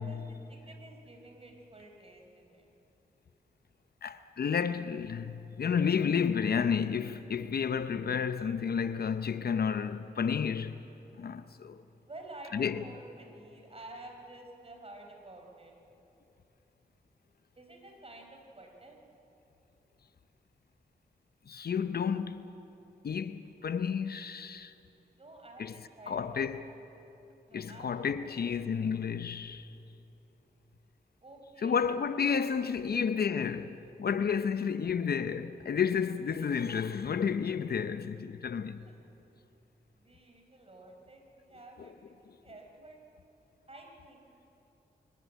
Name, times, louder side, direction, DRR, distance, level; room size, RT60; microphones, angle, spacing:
voice 1, 0.0-2.7 12.1-15.7 17.6-19.0 25.2-26.8 27.5-28.3 31.2-31.9 32.5-32.6 32.8-33.0 34.7-34.9 39.9-43.0 43.7-44.3, right 2 dB, 35° right, 4.4 m, -51 dB
voice 2, 4.0-10.8 11.2-11.8 12.5-12.8 21.5-22.5 23.0-24.7 25.6-25.7 26.1-26.6 27.5-29.7 31.6-38.8 41.8-41.9, left 6 dB, 65° left, 0.7 m, -31 dB
25.0 x 14.5 x 9.5 m
cardioid pair, 70°, 17 cm